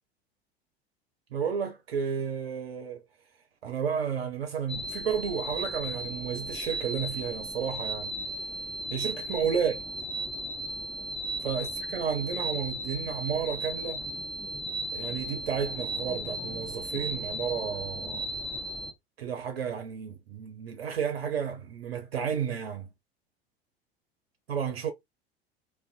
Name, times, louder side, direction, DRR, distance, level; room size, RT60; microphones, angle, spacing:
voice 1, 1.3-3.0 3.6-8.1 8.9-9.8 11.4-14.0 14.9-18.3 19.2-22.9 24.5-24.9, right 7 dB, 80° right, 0.5 m, -32 dB
sound 1, 4.7-18.9, right 1 dB, ahead, 0.4 m, -36 dB
2.4 x 2.2 x 2.3 m
figure-of-eight pair, 75°, 30 cm